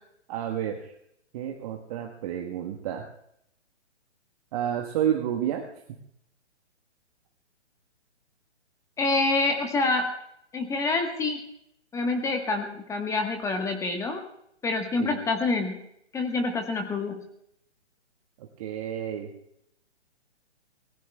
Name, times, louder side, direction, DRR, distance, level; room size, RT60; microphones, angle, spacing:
voice 1, 0.3-0.9 1.3-3.1 4.5-5.6 5.9-6.0 15.0-15.1 18.6-19.3, right 10 dB, 30° right, 2 dB, 1.4 m, -30 dB
voice 2, 9.0-10.1 10.5-11.4 11.9-14.2 14.6-15.8 16.1-17.2, left 3 dB, 10° left, 4 dB, 1.3 m, -27 dB
25.5 x 19.0 x 2.3 m, 0.74 s
figure-of-eight pair, 130°, 35 cm